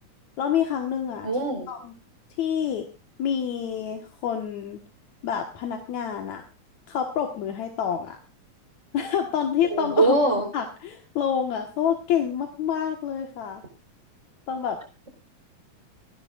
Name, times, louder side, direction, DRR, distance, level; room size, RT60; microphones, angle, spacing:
voice 1, 0.4-1.3 1.7-1.9 2.4-2.9 3.2-4.8 5.2-6.4 6.9-8.2 8.9-10.1 10.5-13.6 14.5-14.8, left 8 dB, 75° left, 4 dB, 2.8 m, -27 dB
voice 2, 1.2-1.7 9.7-10.5, right 3 dB, 25° right, 5 dB, 4.4 m, -22 dB
25.5 x 10.5 x 2.5 m, 0.31 s
omnidirectional pair, 3.4 m